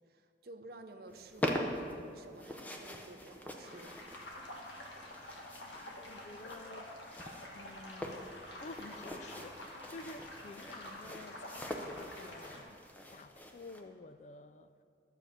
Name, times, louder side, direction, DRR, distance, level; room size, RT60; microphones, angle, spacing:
voice 1, 0.1-1.7 2.1-4.0, right 2 dB, 60° right, 6 dB, 0.7 m, -52 dB
sound 1, 1.1-13.8, left 1 dB, 10° left, 0.7 m, -43 dB
sound 2, 3.6-12.6, left 1 dB, 85° left, 1.7 m, -48 dB
voice 2, 6.1-6.9 7.5-8.3 8.6-12.8 13.1-14.8, left 3 dB, 40° left, 10 dB, 0.3 m, -51 dB
11.5 x 7.4 x 5.1 m, 2.3 s
head